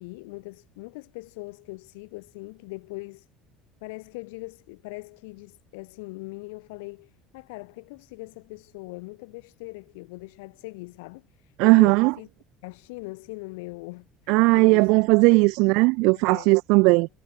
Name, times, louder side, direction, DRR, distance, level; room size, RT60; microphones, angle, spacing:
voice 1, 0.0-3.3 3.8-12.3 12.6-15.0 15.3-15.5 16.1-16.6 17.0-17.1, left 26 dB, 90° left, 7.0 m, -41 dB
voice 2, 11.6-12.1 14.3-17.1, right 28 dB, 75° right, 1.0 m, -18 dB
supercardioid pair, 115°, 0 cm